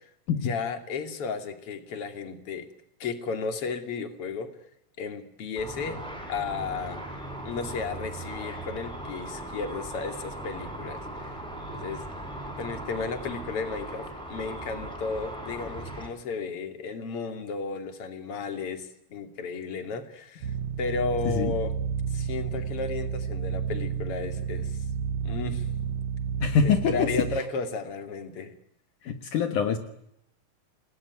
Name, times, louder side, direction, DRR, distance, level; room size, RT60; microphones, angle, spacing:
voice 1, 0.3-2.7 3.0-4.5 5.0-6.0 6.3-7.2 7.4-11.3 11.7-12.0 12.6-20.5 20.8-21.7 22.1-24.7 25.2-25.6 26.6-28.5, left 4 dB, 45° left, 7 dB, 3.3 m, -34 dB
Car / Traffic noise roadway noise / Engine, 5.6-16.1, right 1 dB, ahead, 7.0 m, -38 dB
sound 1, 20.4-27.4, right 7 dB, 80° right, 3.5 m, -31 dB
voice 2, 26.4-27.1 29.0-29.8, left 6 dB, 70° left, 7 dB, 3.0 m, -24 dB
29.0 x 20.5 x 9.5 m, 0.76 s
omnidirectional pair, 3.9 m